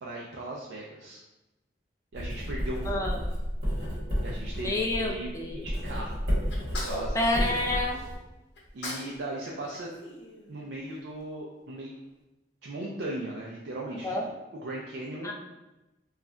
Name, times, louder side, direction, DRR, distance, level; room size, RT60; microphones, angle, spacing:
voice 1, 0.0-1.2 2.1-3.1 4.2-6.3 6.8-7.3 8.7-10.0 10.5-12.0 12.6-15.3, right 2 dB, 80° right, -2 dB, 0.4 m, -38 dB
Writing, 2.1-8.2, equal, 55° right, 1.2 m, -31 dB
voice 2, 2.9-3.2 4.6-5.6 7.1-8.0 14.0-14.3 15.2-15.3, left 2 dB, 20° left, 0 dB, 0.3 m, -29 dB
Sneeze, 6.5-8.1 8.6-9.2 9.4-10.9, left 1 dB, 85° left, 0.7 m, -40 dB
2.3 x 2.1 x 3.6 m, 1.0 s
head